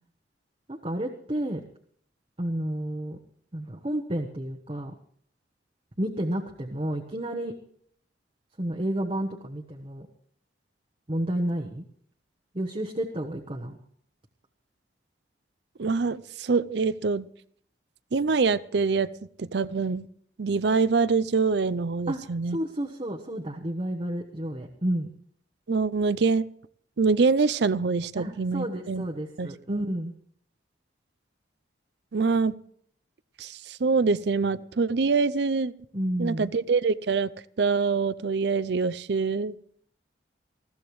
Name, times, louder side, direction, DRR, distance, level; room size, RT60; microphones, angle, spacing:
voice 1, 0.7-1.6 2.4-3.2 3.5-4.9 6.0-7.5 8.6-10.1 11.1-11.8 12.5-13.8 22.1-22.2 22.5-25.1 28.2-30.1 35.9-36.5, right 1 dB, 30° right, 1.0 m, -31 dB
voice 2, 15.8-17.3 18.1-19.1 19.4-20.1 20.4-22.6 25.7-26.5 27.0-29.1 29.4-29.8 32.1-32.6 33.4-35.7 36.2-37.3 37.6-39.6, right 4 dB, 65° right, 0.5 m, -25 dB
20.0 x 15.0 x 3.1 m
head